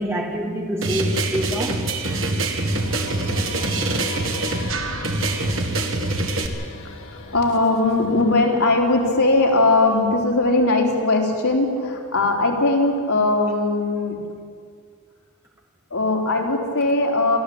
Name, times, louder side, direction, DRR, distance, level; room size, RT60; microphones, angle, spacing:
voice 1, 0.0-1.8 7.3-7.4, equal, 10° right, 0 dB, 2.8 m, -27 dB
sound 1, 0.8-6.5, right 2 dB, 60° right, 1.9 m, -24 dB
sound 2, 2.7-10.1, left 3 dB, 65° left, 1.6 m, -38 dB
voice 2, 6.8-14.2 15.9-17.4, left 2 dB, 85° left, -1 dB, 3.7 m, -20 dB
28.5 x 12.5 x 8.7 m, 2.1 s
head